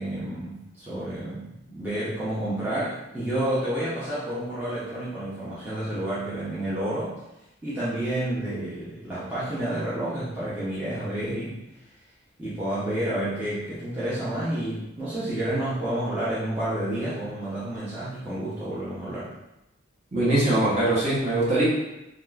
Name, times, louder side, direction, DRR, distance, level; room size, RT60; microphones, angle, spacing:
voice 1, 0.0-7.2 7.6-11.6 12.4-19.3, right 1 dB, 10° right, -12 dB, 0.6 m, -30 dB
voice 2, 20.1-21.6, right 1 dB, 35° right, -7 dB, 0.9 m, -22 dB
3.5 x 2.4 x 2.3 m, 0.93 s
head